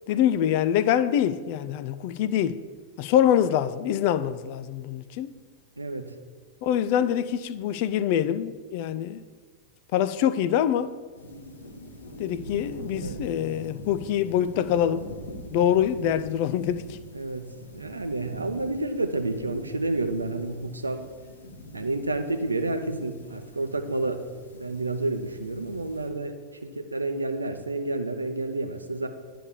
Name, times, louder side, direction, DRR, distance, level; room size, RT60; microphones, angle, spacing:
voice 1, 0.1-2.6 3.0-5.4 6.6-9.2 9.9-10.9 12.2-15.1 15.5-17.0, left 10 dB, 45° left, 0.3 m, -25 dB
voice 2, 5.8-6.1 13.0-13.3 17.1-21.1 21.7-24.2 24.5-26.3 26.7-29.1, right 2 dB, 80° right, 0.6 m, -30 dB
sound 1, 11.1-26.1, equal, 70° left, 1.2 m, -43 dB
9.5 x 3.4 x 6.9 m
figure-of-eight pair, 90°, 0 cm